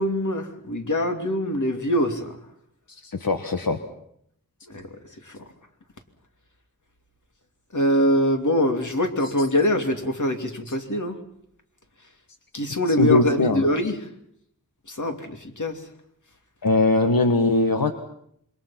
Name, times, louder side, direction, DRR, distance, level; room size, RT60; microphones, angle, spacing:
voice 1, 0.0-2.4 4.7-5.4 7.7-11.2 12.5-14.1 14.9-15.9, equal, 60° left, 4 dB, 2.9 m, -24 dB
voice 2, 2.9-3.8 10.7-10.8 12.9-13.6 16.6-17.9, left 2 dB, 85° left, 6 dB, 1.4 m, -21 dB
27.0 x 24.0 x 5.9 m, 0.71 s
wide cardioid pair, 60°, 34 cm